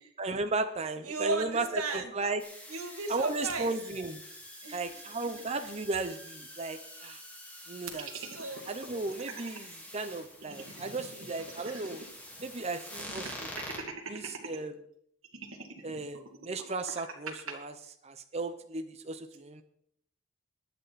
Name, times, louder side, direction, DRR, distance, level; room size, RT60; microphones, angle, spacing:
voice 1, 0.2-2.4 3.1-4.2 4.7-7.2 7.7-8.1 8.7-12.0 12.4-13.5 14.1-14.8 15.8-17.8 18.0-19.6, right 3 dB, 30° right, 7 dB, 0.8 m, -35 dB
voice 2, 1.0-2.1 2.7-3.7 4.6-5.3 5.6-5.7 8.3-8.6, right 3 dB, 90° right, 5 dB, 2.5 m, -36 dB
sound 1, 2.4-13.8, left 1 dB, 5° left, 3.8 m, -47 dB
sound 2, 7.9-9.6 10.0-10.1 10.3-12.1 12.4-12.5 13.0-14.6 15.2-17.5, right 4 dB, 70° right, 2.1 m, -43 dB
21.0 x 9.1 x 4.2 m, 0.68 s
head